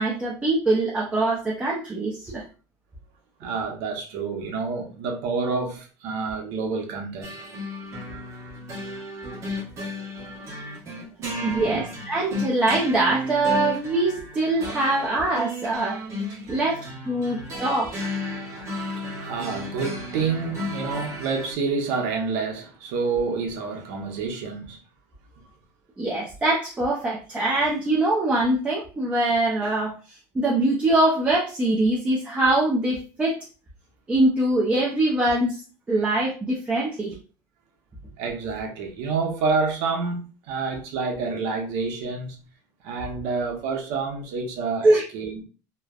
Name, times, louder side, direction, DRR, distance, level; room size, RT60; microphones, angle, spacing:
voice 1, 0.0-2.4 11.4-16.0 16.5-16.8 17.0-18.1 26.0-29.9 30.3-33.4 34.1-35.6 35.9-37.2 44.8-45.0, right 2 dB, 15° right, 0.4 m, -23 dB
voice 2, 3.4-7.3 9.3-9.5 11.3-11.8 16.4-16.6 17.2-17.6 18.3-24.8 38.2-42.4 42.8-45.4, right 4 dB, 65° right, 0.8 m, -29 dB
sound 1, 7.2-21.5, left 1 dB, 30° right, 1.1 m, -34 dB
3.1 x 2.0 x 2.3 m
cardioid pair, 155°, 9 cm